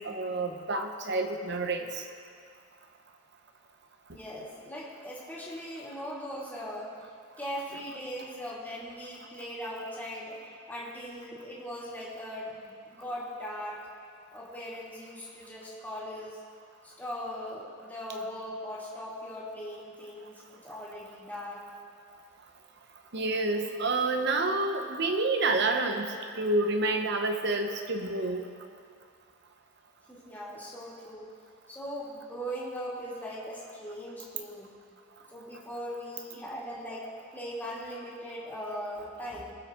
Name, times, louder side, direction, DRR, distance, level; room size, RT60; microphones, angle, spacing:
voice 1, 0.0-2.1 23.1-28.4, right 2 dB, 55° right, 5 dB, 1.0 m, -29 dB
voice 2, 4.1-6.9 7.4-10.4 10.7-13.8 14.3-16.4 16.8-21.6 30.1-31.3 31.7-34.7 35.3-39.5, equal, 10° left, -7 dB, 2.5 m, -39 dB
23.0 x 7.7 x 3.7 m, 2.3 s
head